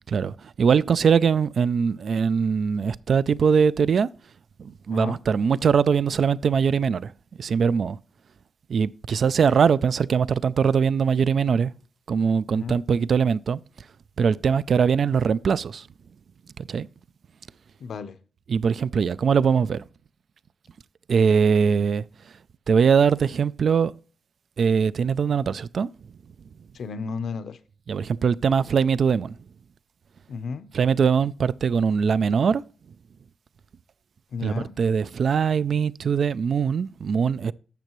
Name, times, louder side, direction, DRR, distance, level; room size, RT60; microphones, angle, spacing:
voice 1, 0.1-4.1 4.6-7.1 7.4-8.0 8.7-11.7 12.1-13.6 14.2-15.8 16.7-16.9 18.5-19.8 21.1-22.0 22.7-23.9 24.6-25.9 27.9-29.3 30.7-32.6 34.4-37.5, right 6 dB, 55° right, 0.3 m, -21 dB
voice 2, 4.9-5.2 12.5-12.8 17.8-18.2 26.7-27.6 30.3-30.7 34.3-34.7, left 5 dB, 65° left, 0.7 m, -33 dB
12.0 x 7.4 x 3.1 m
wide cardioid pair, 180°, 0 cm